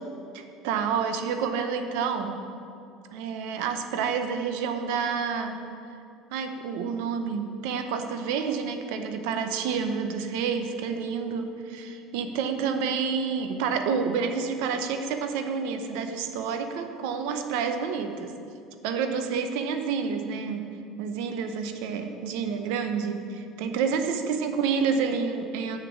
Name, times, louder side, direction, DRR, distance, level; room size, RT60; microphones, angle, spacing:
voice 1, 0.3-2.4 3.1-5.6 6.3-18.3 18.8-20.7 21.0-25.8, right 6 dB, 80° right, 7 dB, 0.7 m, -29 dB
6.1 x 5.9 x 7.2 m, 2.5 s
supercardioid pair, 115°, 0 cm